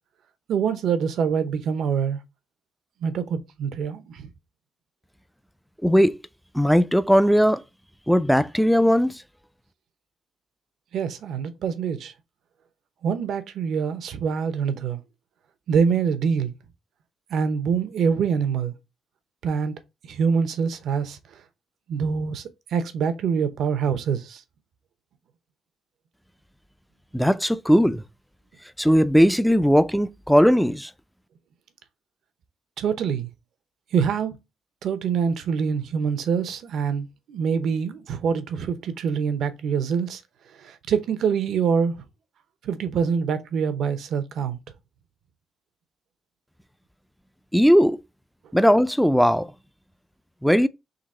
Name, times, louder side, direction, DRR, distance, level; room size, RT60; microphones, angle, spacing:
voice 1, 0.5-2.2 3.0-4.3 10.9-12.1 13.0-15.0 15.7-16.5 17.3-18.7 19.4-19.7 20.1-21.2 21.9-22.4 22.7-24.4 32.8-33.3 33.9-34.4 34.8-40.2 40.6-41.9 42.6-44.6, right 6 dB, 75° right, 0.7 m, -25 dB
voice 2, 5.8-6.2 6.5-7.6 8.1-9.2 27.1-28.0 28.8-30.9 47.5-48.0 48.5-49.5 50.4-50.7, equal, ahead, 0.3 m, -18 dB
3.9 x 2.8 x 4.2 m
cardioid pair, 115°, 0 cm